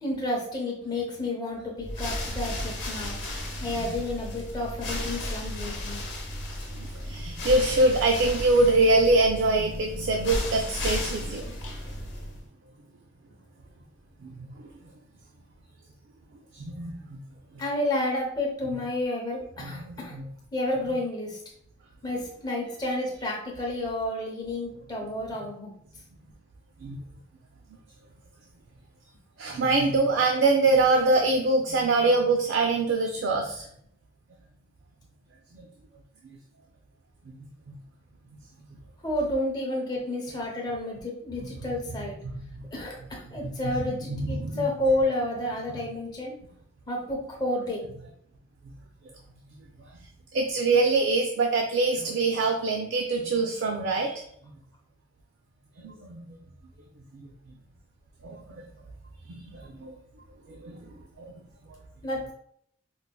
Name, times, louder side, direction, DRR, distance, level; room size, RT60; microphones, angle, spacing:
voice 1, 0.0-3.2 3.6-6.0 17.6-20.2 20.5-21.4 22.0-25.7 39.0-42.2 42.7-46.3 46.9-47.9 62.0-62.3, left 1 dB, 20° left, -2 dB, 0.7 m, -30 dB
sound 1, 1.8-12.5, left 1 dB, 55° left, 0.9 m, -34 dB
voice 2, 6.7-11.6 14.2-14.7 16.5-17.2 19.6-20.2 26.8-27.0 29.4-33.7 35.5-35.7 37.4-37.7 41.9-42.0 42.3-42.4 44.1-44.6 50.3-54.2 55.8-56.3 57.1-57.3 58.2-58.6 59.3-60.0 60.5-61.3, right 2 dB, 60° right, 2 dB, 0.4 m, -24 dB
4.5 x 2.1 x 2.2 m, 0.68 s
head